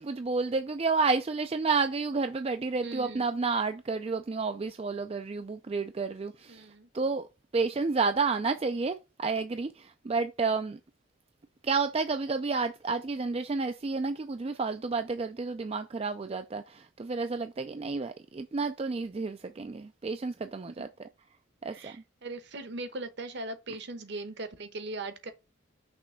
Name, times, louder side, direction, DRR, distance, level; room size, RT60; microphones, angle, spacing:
voice 1, 0.0-6.7 6.9-7.3 7.5-10.8 11.6-20.9 21.6-22.0, right 4 dB, 30° right, 0.3 m, -30 dB
voice 2, 2.8-3.4 6.5-6.9 21.7-25.3, right 2 dB, 55° right, 1.0 m, -39 dB
6.0 x 3.3 x 5.6 m
head